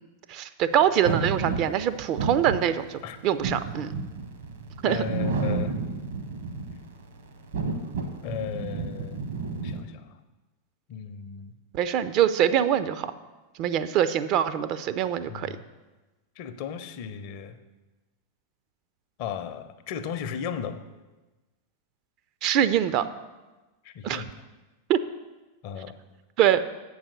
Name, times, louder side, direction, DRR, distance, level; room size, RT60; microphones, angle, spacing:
voice 1, 0.3-3.9 4.8-5.0 11.7-13.1 13.6-15.6 22.4-23.1 24.0-24.2 24.9-25.0 26.4-26.6, right 10 dB, 40° right, 12 dB, 0.4 m, -24 dB
sound 1, 1.0-6.9 7.4-9.8, right 4 dB, 65° right, 1.0 m, -31 dB
voice 2, 4.9-5.7 8.2-9.2 9.6-10.2 10.9-11.5 15.3-15.7 16.4-17.6 19.2-20.9 23.8-24.4 25.6-26.0, left 8 dB, 45° left, 10 dB, 0.6 m, -35 dB
7.3 x 4.8 x 6.6 m, 1.2 s
figure-of-eight pair, 90°, 0 cm